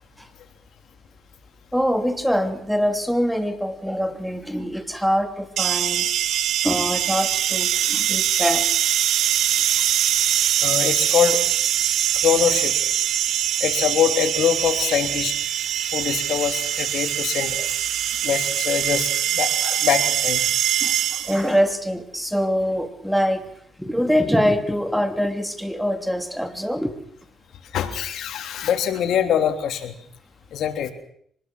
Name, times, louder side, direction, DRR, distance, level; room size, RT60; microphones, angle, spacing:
voice 1, 1.7-6.1 6.6-8.6 17.6-17.7 20.8-20.9 21.2-23.4 23.8-26.9, equal, ahead, 9 dB, 3.0 m, -24 dB
sound 1, 5.6-21.5, right 11 dB, 75° right, 1.2 m, -23 dB
voice 2, 10.6-11.4 12.2-12.7 13.6-15.3 15.9-17.5 18.2-19.1 19.3-20.4 27.7-29.9 30.5-30.9, left 9 dB, 75° left, 7 dB, 3.3 m, -23 dB
24.5 x 20.5 x 6.3 m, 0.64 s
cardioid pair, 90°, 0 cm